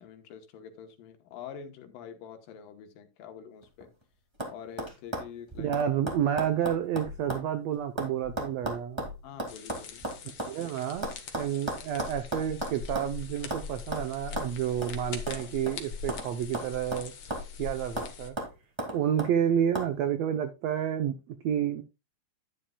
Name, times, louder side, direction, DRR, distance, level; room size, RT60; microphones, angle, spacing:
voice 1, 0.0-3.9 4.5-5.7 9.2-10.1, left 8 dB, 80° left, 7 dB, 2.8 m, -46 dB
sound 1, 3.6-4.0 4.4-4.5 4.8-7.5 7.7-10.5 11.0-13.2 13.5-13.7 13.9-14.1 14.4-14.5 14.8-14.9 15.3-16.3 16.5-17.6 18.0-18.1 18.4-19.3 19.7-19.9, right 1 dB, 15° right, 1.2 m, -35 dB
voice 2, 5.6-9.1 10.5-11.1 11.3-17.1 17.6-18.4 18.9-21.8, right 9 dB, 85° right, 8 dB, 1.5 m, -30 dB
sound 2, 9.5-18.3, left 6 dB, 55° left, 1.6 m, -42 dB
10.5 x 10.0 x 2.2 m, 0.26 s
omnidirectional pair, 4.0 m